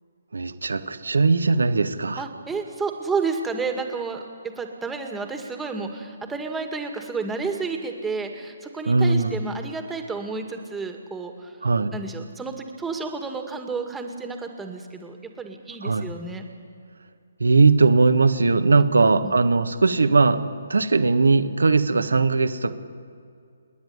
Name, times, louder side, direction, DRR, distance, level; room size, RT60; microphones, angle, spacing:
voice 1, 0.3-2.2 8.9-9.4 11.6-11.9 15.8-16.1 17.4-20.4 20.7-22.8, right 3 dB, 80° right, 10 dB, 1.5 m, -19 dB
voice 2, 2.2-11.6 11.9-16.4 18.9-19.3, right 4 dB, 5° right, 4 dB, 2.1 m, -31 dB
28.5 x 10.5 x 9.8 m, 2.3 s
figure-of-eight pair, 145°, 0 cm